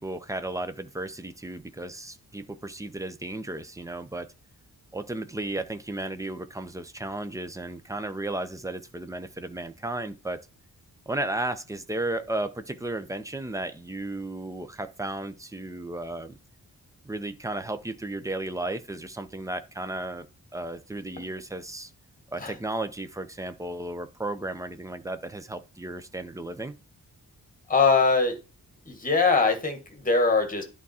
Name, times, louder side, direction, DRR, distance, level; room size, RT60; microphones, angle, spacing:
voice 1, 0.0-4.3 4.9-10.5 11.1-16.3 17.0-20.3 20.5-21.9 22.3-26.7, right 2 dB, 10° right, 0.5 m, -34 dB
voice 2, 27.7-28.4 28.8-30.6, left 4 dB, 25° left, 1.6 m, -22 dB
11.0 x 3.7 x 4.2 m
wide cardioid pair, 180°, 35 cm